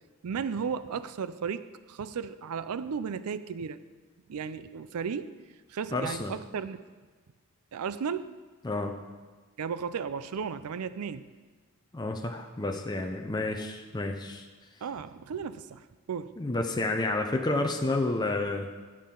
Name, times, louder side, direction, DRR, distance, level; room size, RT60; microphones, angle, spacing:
voice 1, 0.2-3.8 4.3-5.3 5.7-6.9 7.7-8.4 9.6-11.3 14.8-16.4, right 6 dB, 75° right, 14 dB, 0.4 m, -35 dB
voice 2, 5.9-6.3 8.6-8.9 11.9-14.5 16.4-18.7, left 2 dB, 20° left, 3 dB, 0.5 m, -30 dB
14.0 x 7.5 x 3.8 m, 1.4 s
head